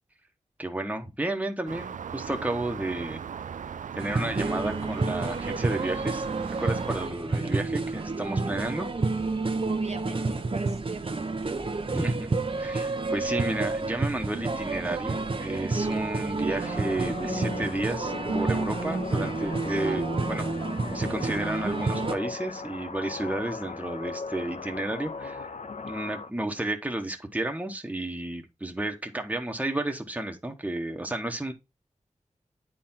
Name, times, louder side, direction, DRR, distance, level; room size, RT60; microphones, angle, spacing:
voice 1, 0.6-3.2 3.9-6.2 6.6-8.9 11.9-12.3 12.6-20.5 20.9-25.5 25.8-31.5, right 1 dB, 10° right, 1.3 m, -32 dB
sound 1, 1.7-7.1, right 7 dB, 90° right, 0.4 m, -38 dB
sound 2, 4.0-22.2, right 3 dB, 45° right, 0.9 m, -29 dB
voice 2, 9.6-11.6, right 4 dB, 60° right, 1.2 m, -38 dB
sound 3, 16.5-26.3, left 4 dB, 65° left, 0.5 m, -37 dB
9.2 x 4.5 x 3.7 m
wide cardioid pair, 65°, 13 cm